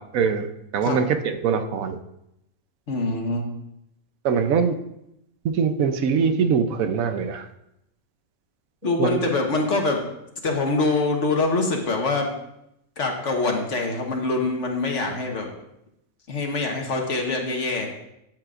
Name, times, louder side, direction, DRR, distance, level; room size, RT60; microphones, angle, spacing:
voice 1, 0.1-2.0 4.2-4.8 5.4-7.5 9.0-9.2, right 6 dB, 75° right, 8 dB, 1.1 m, -22 dB
voice 2, 2.9-3.5 8.8-10.0 10.4-12.3 13.0-15.5 16.3-17.9, left 3 dB, 60° left, 2 dB, 1.5 m, -24 dB
12.0 x 7.6 x 2.5 m, 0.83 s
omnidirectional pair, 1.5 m